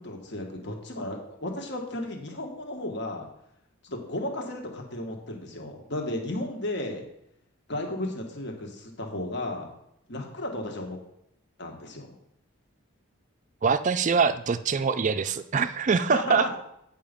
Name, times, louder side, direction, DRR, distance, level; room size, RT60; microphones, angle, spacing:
voice 1, 0.0-3.3 3.8-7.0 7.7-9.7 10.1-11.0 11.6-12.1 16.1-16.6, left 1 dB, 55° left, 2 dB, 1.6 m, -34 dB
voice 2, 13.6-16.6, right 5 dB, 35° right, 12 dB, 0.4 m, -24 dB
8.7 x 5.6 x 5.2 m, 0.78 s
head